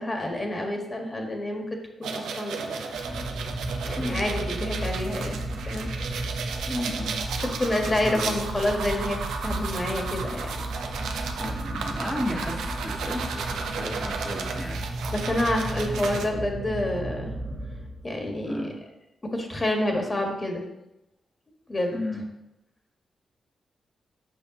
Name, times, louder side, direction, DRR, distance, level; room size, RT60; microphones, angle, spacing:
voice 1, 0.0-1.6 2.0-2.9 3.8-5.4 5.6-5.9 7.6-9.2 9.4-10.5 15.1-17.3 18.0-18.7 19.3-20.6 21.7-21.9, left 1 dB, 30° left, 2 dB, 1.5 m, -28 dB
sound 1, 2.0-16.2, right 5 dB, 85° right, 0.6 m, -34 dB
sound 2, 2.9-18.3, right 1 dB, 45° right, 1.4 m, -34 dB
voice 2, 6.7-7.2 8.0-8.4 11.4-14.8 18.4-18.8 21.9-22.2, left 1 dB, 10° left, -3 dB, 1.1 m, -33 dB
6.7 x 5.6 x 3.0 m, 0.90 s
supercardioid pair, 55°, 0 cm